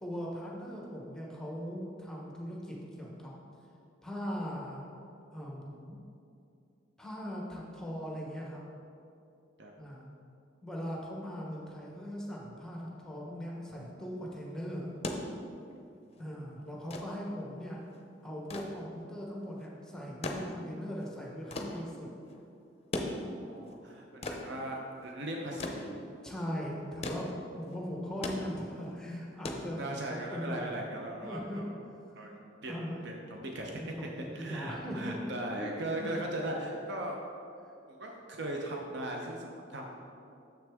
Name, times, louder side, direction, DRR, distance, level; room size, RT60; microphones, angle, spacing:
voice 1, 0.0-3.3 4.0-4.9 5.3-6.0 7.0-8.6 9.8-10.1 10.6-14.9 16.2-17.8 18.2-22.1 26.2-27.3 27.5-29.8 30.1-30.7 31.2-31.6 32.7-33.1 33.8-35.2 35.6-35.7 36.0-36.1 37.6-37.7, equal, 5° left, -3 dB, 0.9 m, -40 dB
sound 1, 14.8-30.3 31.5-31.6, left 2 dB, 35° left, 0.6 m, -41 dB
voice 2, 23.2-25.9 29.8-31.7 32.1-33.8 34.3-37.2 37.9-40.0, right 1 dB, 65° right, 0 dB, 0.7 m, -38 dB
7.1 x 6.2 x 3.5 m, 2.6 s
head